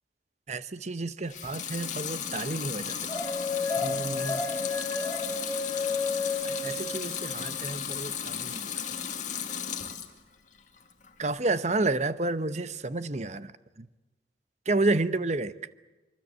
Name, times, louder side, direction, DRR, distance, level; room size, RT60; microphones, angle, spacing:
voice 1, 0.5-3.0 3.8-4.4 6.4-8.7 11.2-13.5 13.8-13.9 14.7-15.5, right 2 dB, 40° right, 14 dB, 0.9 m, -30 dB
Water tap faucet / Sink (filling or washing) / Liquid, 1.2-10.2 10.6-11.3, left 8 dB, 45° left, 2.1 m, -35 dB
sound 1, 3.1-7.6, left 4 dB, 15° left, 3.9 m, -32 dB
24.5 x 24.5 x 8.0 m, 1.1 s
head